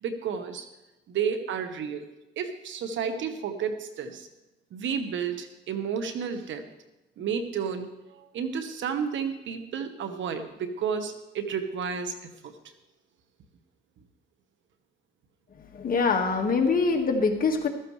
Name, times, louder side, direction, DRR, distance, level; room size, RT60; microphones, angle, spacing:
voice 1, 0.0-0.7 1.1-2.1 2.4-4.3 4.7-6.7 7.2-12.6, right 6 dB, 70° right, 8 dB, 1.3 m, -31 dB
voice 2, 15.7-17.7, left 4 dB, 45° left, 3 dB, 1.8 m, -24 dB
14.5 x 13.5 x 3.3 m, 0.98 s
cardioid pair, 90°, 20 cm